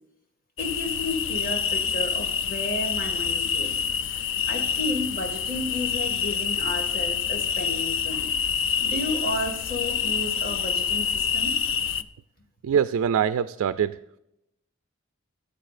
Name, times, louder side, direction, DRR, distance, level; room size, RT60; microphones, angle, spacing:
sound 1, 0.6-12.0, left 7 dB, 60° left, 0.4 m, -27 dB
voice 1, 0.6-3.8 4.1-8.3 8.8-11.6, left 2 dB, 45° left, 1 dB, 1.9 m, -32 dB
voice 2, 12.6-14.2, right 8 dB, 90° right, 12 dB, 0.3 m, -24 dB
15.0 x 8.4 x 2.5 m, 0.85 s
head